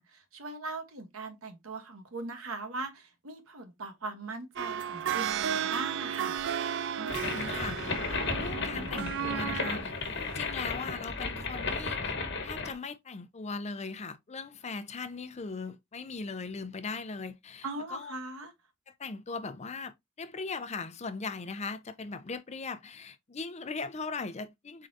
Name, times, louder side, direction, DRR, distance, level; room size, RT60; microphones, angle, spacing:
voice 1, 0.0-6.5 17.6-18.5, right 3 dB, 90° right, 1.1 m, -40 dB
sound 1, 4.6-9.9 10.4-10.5, right 9 dB, 60° right, 0.4 m, -33 dB
voice 2, 7.0-12.1 12.4-18.1 18.9-24.9, left 4 dB, 35° left, 0.5 m, -39 dB
sound 2, 7.1-12.7, left 4 dB, 60° left, 1.2 m, -34 dB
4.4 x 3.8 x 2.6 m
head